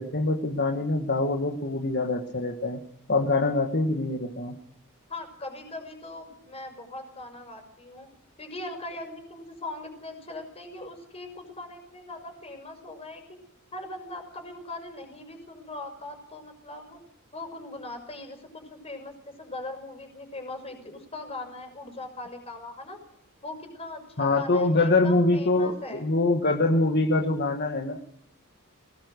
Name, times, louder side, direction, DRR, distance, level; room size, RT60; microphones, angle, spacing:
voice 1, 0.0-2.8 3.1-4.6 24.2-28.0, left 2 dB, 50° left, 3 dB, 1.6 m, -24 dB
voice 2, 5.1-8.1 8.4-13.2 13.7-17.0 17.3-23.0 23.4-26.0, left 2 dB, 30° left, 4 dB, 5.8 m, -40 dB
20.5 x 19.5 x 6.6 m, 0.76 s
head